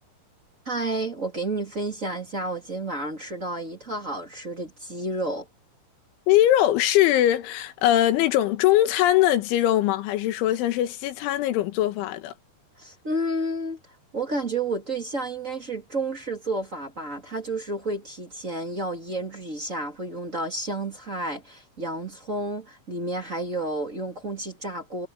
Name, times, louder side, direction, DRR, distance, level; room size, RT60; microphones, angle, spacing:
voice 1, 0.6-5.5 12.8-13.8 14.1-25.1, right 2 dB, 20° right, 2.2 m, -31 dB
voice 2, 6.3-12.3, left 13 dB, 85° left, 3.8 m, -21 dB
omnidirectional pair, 5.4 m